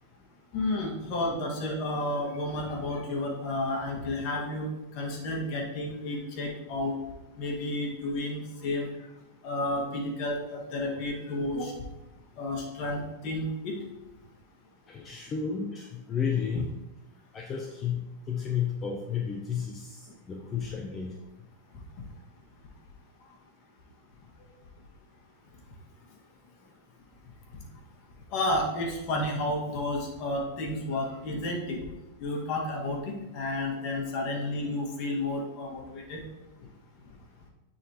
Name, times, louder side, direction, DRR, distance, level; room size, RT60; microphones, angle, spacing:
voice 1, 0.5-4.7 4.9-6.9 7.4-8.9 9.4-11.7 12.4-13.8 28.3-31.8 32.2-36.2, left 1 dB, 50° left, 0 dB, 1.7 m, -31 dB
voice 2, 14.9-16.7 17.3-21.1, left 7 dB, 25° left, 1 dB, 0.7 m, -32 dB
9.2 x 4.0 x 3.0 m, 0.99 s
hypercardioid pair, 115°, 0 cm